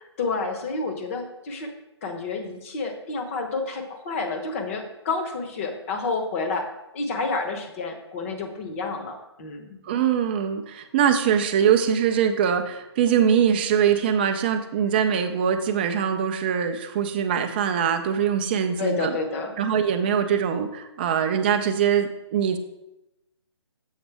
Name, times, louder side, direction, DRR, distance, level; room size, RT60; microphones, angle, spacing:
voice 1, 0.0-1.7 2.0-6.6 6.9-9.8 18.8-19.5, left 3 dB, 30° left, 5 dB, 0.9 m, -29 dB
voice 2, 9.8-19.2 19.6-22.6, right 8 dB, 20° right, 7 dB, 0.4 m, -22 dB
7.2 x 5.0 x 3.4 m, 0.92 s
figure-of-eight pair, 150°, 15 cm